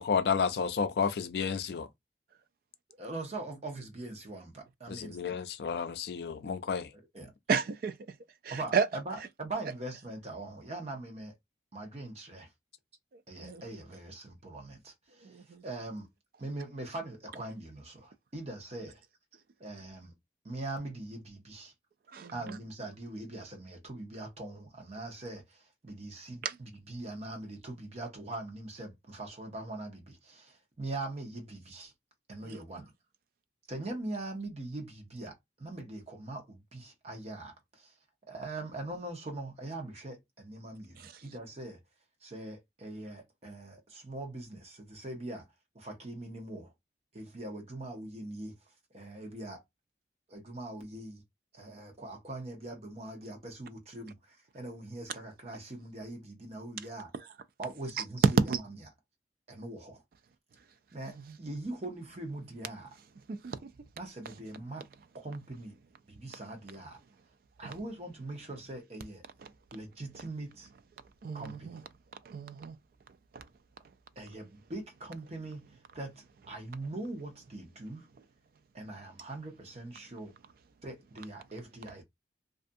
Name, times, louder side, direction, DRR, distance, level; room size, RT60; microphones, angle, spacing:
voice 1, 0.0-1.9 4.9-6.9, left 6 dB, 60° left, 0.4 m, -31 dB
voice 2, 3.0-5.3 7.1-7.3 8.5-11.3 11.7-12.5 13.3-16.1 16.4-19.0 19.6-20.1 20.4-21.7 22.3-31.9 32.3-32.9 33.7-37.9 38.3-41.8 42.2-45.4 45.7-46.7 47.1-48.6 48.9-49.6 50.3-51.2 51.5-57.1 57.6-58.4 59.5-60.0 60.9-62.9 64.0-64.9 65.1-65.8 66.1-67.0 67.6-69.2 69.7-70.7 71.3-71.8 74.2-75.6 75.9-78.1 78.7-80.3 80.8-82.0, right 2 dB, 35° right, 0.8 m, -42 dB
voice 3, 7.5-7.9 8.4-8.9 13.4-13.6 15.2-15.6 22.1-22.6 26.4-26.6 32.4-32.8 41.0-41.1 58.5-58.6 61.3-61.4 63.3-63.6 67.6-67.7 69.4-69.5 71.2-71.8 72.3-72.7 73.3-73.4, right 6 dB, 55° right, 0.3 m, -33 dB
2.5 x 2.4 x 2.5 m
head